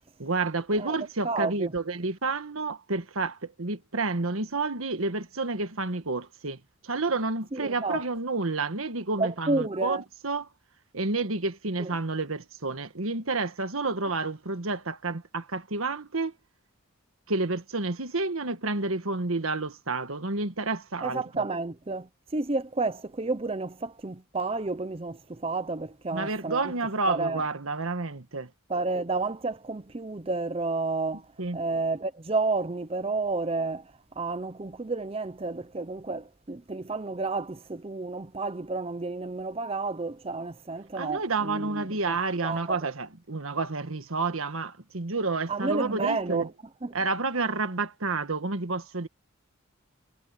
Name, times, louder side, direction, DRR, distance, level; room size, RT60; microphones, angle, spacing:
voice 1, 0.2-10.0 10.2-10.5 10.9-16.3 17.3-21.2 26.1-28.5 31.4-31.6 40.9-46.5 46.9-49.1, right 3 dB, 80° right, 1.5 m, -30 dB
voice 2, 1.2-1.7 7.5-8.0 9.2-10.0 11.8-11.9 21.0-26.7 27.1-27.4 28.7-42.2 42.4-42.8 45.5-46.5 46.8-46.9, right 3 dB, 25° right, 0.7 m, -31 dB
head